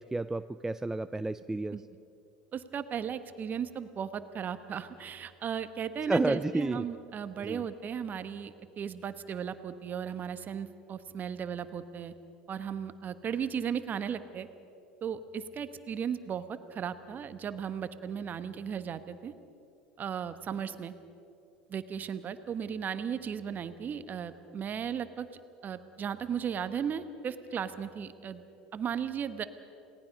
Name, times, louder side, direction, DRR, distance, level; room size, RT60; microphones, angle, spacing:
voice 1, 0.0-1.8 6.1-6.9 7.4-7.6, right 2 dB, 10° right, 11 dB, 0.5 m, -31 dB
voice 2, 2.5-12.1 12.5-14.5 15.0-19.3 20.0-20.9 21.7-25.3 25.6-28.4 28.7-29.5, right 7 dB, 35° right, 11 dB, 1.3 m, -36 dB
28.5 x 18.5 x 5.4 m, 2.7 s
hypercardioid pair, 75°, 5 cm